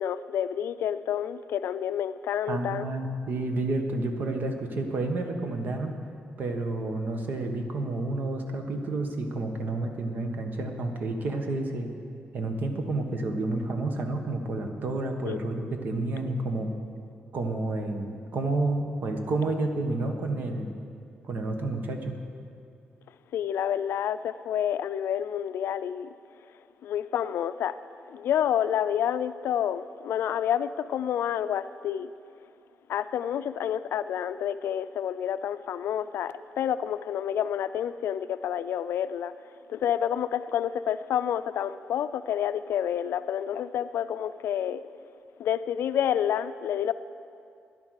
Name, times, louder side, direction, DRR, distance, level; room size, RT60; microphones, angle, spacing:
voice 1, 0.0-2.9 15.2-15.7 23.3-26.1 26.8-27.7 28.1-32.1 32.9-39.3 39.7-44.8 45.4-46.9, left 9 dB, 75° left, 0.4 m, -29 dB
voice 2, 2.5-6.0 6.4-11.9 12.3-16.7 17.3-20.7 21.2-22.1, right 2 dB, 50° right, 1.3 m, -30 dB
13.0 x 10.5 x 6.5 m
wide cardioid pair, 155°, 4 cm